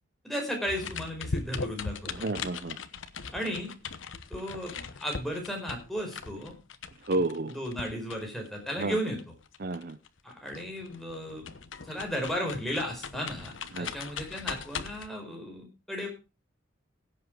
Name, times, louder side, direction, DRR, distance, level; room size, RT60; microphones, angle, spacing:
voice 1, 0.2-2.3 3.3-3.7 4.3-4.7 5.0-6.5 7.1-9.3 10.2-11.5 11.8-16.1, equal, ahead, 0 dB, 4.7 m, -35 dB
sound 1, 0.7-10.2 10.5-15.1, left 5 dB, 80° left, 1.0 m, -39 dB
voice 2, 2.1-2.8 7.1-7.5 8.8-9.0 9.6-10.0 13.7-13.9, right 2 dB, 50° right, 13 dB, 0.6 m, -30 dB
17.0 x 7.8 x 4.9 m, 0.30 s
head